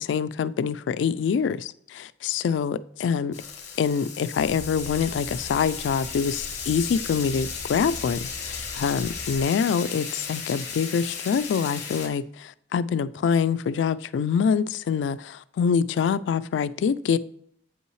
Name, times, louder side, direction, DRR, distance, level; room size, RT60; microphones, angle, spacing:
voice 1, 0.1-3.3 3.8-17.2, left 6 dB, 85° left, 0.3 m, -25 dB
sound 1, 3.3-12.1, left 6 dB, 40° left, 1.1 m, -35 dB
sound 2, 4.4-9.4, equal, 5° left, 1.0 m, -42 dB
8.1 x 5.5 x 3.1 m
head